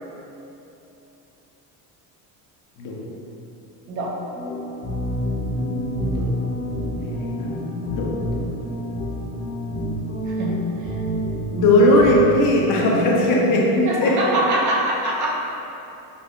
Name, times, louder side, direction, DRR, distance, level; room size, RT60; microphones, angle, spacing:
voice 1, 3.9-4.2 10.3-11.0 13.9-15.3, right 1 dB, 40° right, -2 dB, 0.5 m, -24 dB
sound 1, 4.3-12.4, equal, 85° left, 1.2 m, -28 dB
voice 2, 5.5-6.3 6.9-8.4 11.5-14.2, left 1 dB, 45° left, -2 dB, 0.6 m, -19 dB
5.2 x 2.6 x 2.2 m, 3.0 s
cardioid pair, 125°, 45 cm